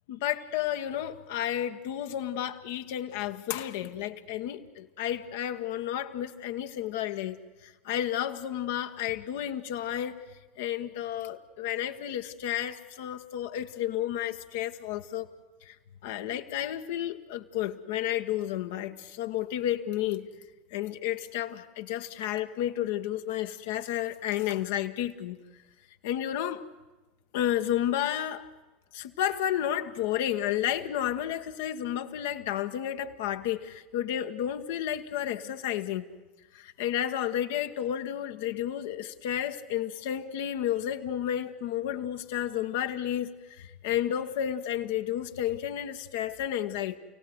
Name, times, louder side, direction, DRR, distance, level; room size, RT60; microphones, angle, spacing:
voice 1, 0.1-10.2 10.6-15.3 15.6-15.7 16.0-20.3 20.7-25.4 26.0-26.6 27.3-28.5 28.9-36.0 36.5-47.0, left 11 dB, 65° left, 1.2 m, -31 dB
29.0 x 17.5 x 7.9 m
hypercardioid pair, 80°, 0 cm